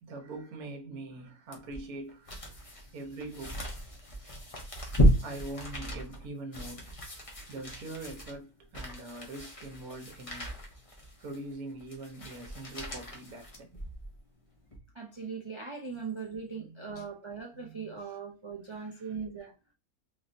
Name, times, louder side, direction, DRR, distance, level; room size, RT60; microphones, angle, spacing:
voice 1, 0.0-2.5 2.9-3.6 4.5-4.6 5.2-6.9 7.5-10.5 11.2-13.9 15.9-16.1 16.5-17.0 17.5-18.0 18.7-19.2, right 2 dB, 70° right, 1.4 m, -43 dB
sound 1, 1.5-14.2 14.6-14.8, equal, 30° left, 0.8 m, -33 dB
voice 2, 14.9-19.5, right 5 dB, 45° right, 0.3 m, -40 dB
3.8 x 3.1 x 2.6 m
omnidirectional pair, 1.6 m